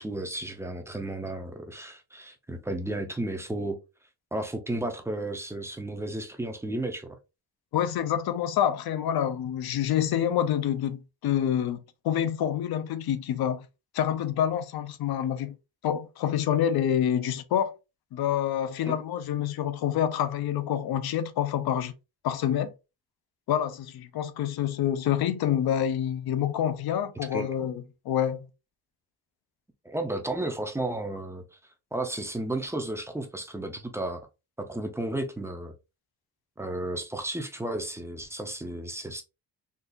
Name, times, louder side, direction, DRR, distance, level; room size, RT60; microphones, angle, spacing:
voice 1, 0.0-3.8 4.3-7.1 18.8-19.0 27.3-27.5 29.8-31.4 31.9-34.2 34.6-35.7 36.6-39.2, right 1 dB, 5° right, 0.4 m, -33 dB
voice 2, 7.7-13.7 13.9-15.6 15.8-17.7 18.1-21.9 22.2-22.7 23.5-28.5, left 10 dB, 65° left, 0.5 m, -27 dB
3.8 x 2.3 x 2.5 m
cardioid pair, 135°, 41 cm